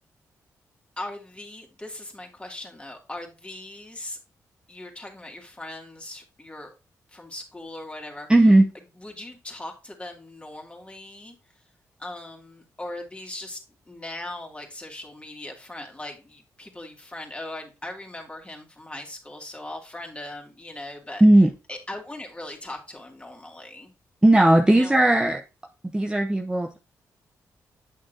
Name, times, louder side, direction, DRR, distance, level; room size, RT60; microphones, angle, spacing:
voice 1, 1.0-4.2 4.7-6.7 7.1-8.5 9.0-11.4 12.0-13.6 13.9-21.2 21.7-23.9 24.7-25.0, left 1 dB, 15° left, 1 dB, 2.6 m, -39 dB
voice 2, 8.3-8.6 21.2-21.5 24.2-25.4 25.9-26.8, right 1 dB, 10° right, 3 dB, 0.7 m, -16 dB
8.4 x 6.5 x 2.7 m, 0.30 s
supercardioid pair, 55°, 7 cm